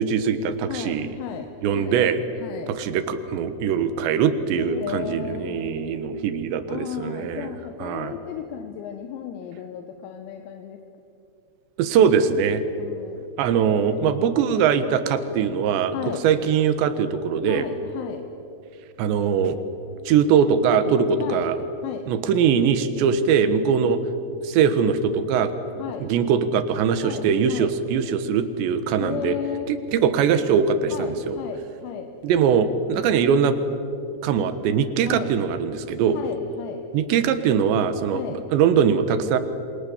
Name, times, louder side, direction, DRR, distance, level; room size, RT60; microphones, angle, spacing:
voice 1, 0.0-1.1 1.6-2.2 2.7-7.5 7.8-8.1 11.8-12.6 13.4-16.0 16.2-17.7 19.0-19.6 20.1-21.6 22.1-24.0 24.4-25.5 26.0-29.4 29.7-31.4 32.2-33.6 34.2-36.2 36.9-38.2 38.5-39.4, right 7 dB, 70° right, 10 dB, 3.2 m, -21 dB
voice 2, 0.7-2.0 2.4-2.7 4.6-6.0 6.7-10.8 12.8-13.3 13.6-14.3 15.9-16.3 17.5-18.3 21.2-21.4 21.8-22.1 25.8-26.1 27.0-27.7 29.0-29.7 30.9-32.1 35.1-35.3 36.1-36.8 38.1-38.4, left 9 dB, 90° left, 5 dB, 4.0 m, -34 dB
28.5 x 25.5 x 7.1 m, 2.7 s
omnidirectional pair, 6.0 m